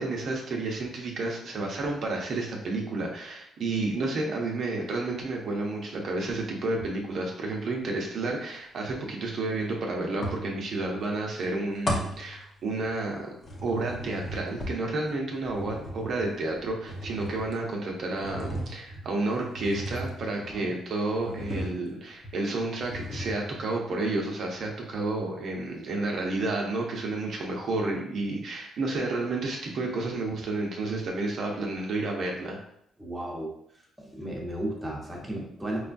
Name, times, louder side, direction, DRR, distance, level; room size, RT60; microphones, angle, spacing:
voice 1, 0.0-13.3 13.6-32.6, right 2 dB, 60° right, 0 dB, 0.8 m, -31 dB
sound 1, 6.8-7.2 10.2-11.1 11.4-13.0 13.4-20.7 21.2-22.0 22.2-22.4 22.7-23.7, equal, 40° left, 0.8 m, -37 dB
voice 2, 20.4-20.7 33.0-33.5 34.0-35.9, right 1 dB, 10° right, -2 dB, 1.0 m, -34 dB
4.8 x 2.3 x 2.5 m, 0.72 s
cardioid pair, 90°, 0 cm